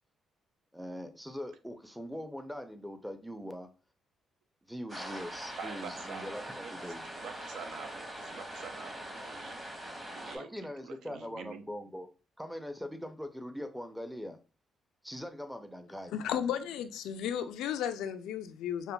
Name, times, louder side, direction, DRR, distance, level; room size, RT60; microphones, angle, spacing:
voice 1, 0.7-3.7 4.7-7.1 10.3-12.1 12.4-14.4 15.0-16.1, equal, ahead, 7 dB, 0.5 m, -42 dB
sound 1, 4.9-10.4, right 1 dB, 20° right, 1.1 m, -42 dB
voice 2, 5.6-10.5 10.8-11.7, right 6 dB, 80° right, 8 dB, 0.4 m, -47 dB
voice 3, 16.1-18.9, left 9 dB, 90° left, 10 dB, 0.3 m, -34 dB
5.2 x 2.1 x 2.2 m, 0.34 s
cardioid pair, 90°, 0 cm